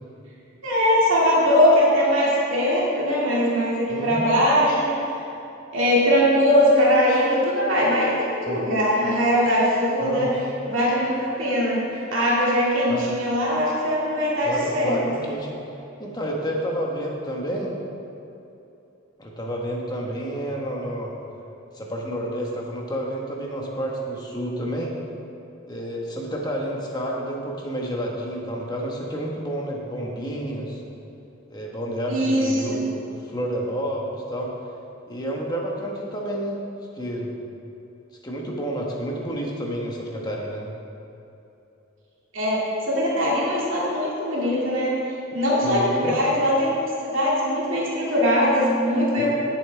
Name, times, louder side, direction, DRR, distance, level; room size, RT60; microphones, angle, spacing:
voice 1, 0.6-5.0 5.7-10.3 10.6-15.0 32.1-32.8 42.3-45.0 45.3-46.7 47.0-49.3, equal, 65° right, -6 dB, 2.5 m, -21 dB
voice 2, 3.9-4.2 8.5-8.6 10.0-10.3 12.9-13.1 14.4-15.6 16.0-17.7 19.2-21.1 21.7-24.9 25.7-30.8 31.5-32.8 33.1-34.5 35.1-36.6 36.9-37.3 38.2-40.7 45.6-46.2 49.2-49.3, equal, 20° left, -2 dB, 1.4 m, -29 dB
16.5 x 7.4 x 3.5 m, 2.9 s
head